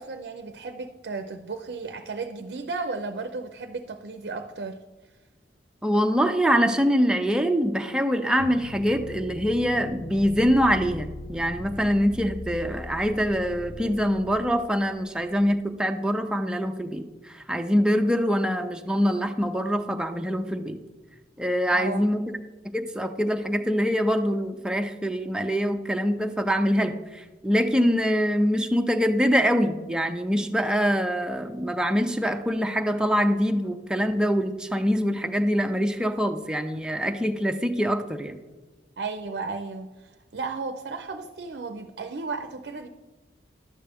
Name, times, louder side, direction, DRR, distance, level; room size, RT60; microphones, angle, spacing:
voice 1, 0.0-4.8 21.7-22.1 39.0-42.9, right 4 dB, 60° right, 7 dB, 0.5 m, -34 dB
voice 2, 5.8-20.8 21.4-22.2 22.7-38.4, equal, 5° right, 5 dB, 0.5 m, -24 dB
sound 1, 8.4-15.5, left 1 dB, 45° left, 0.7 m, -40 dB
11.0 x 7.7 x 3.5 m, 1.2 s
head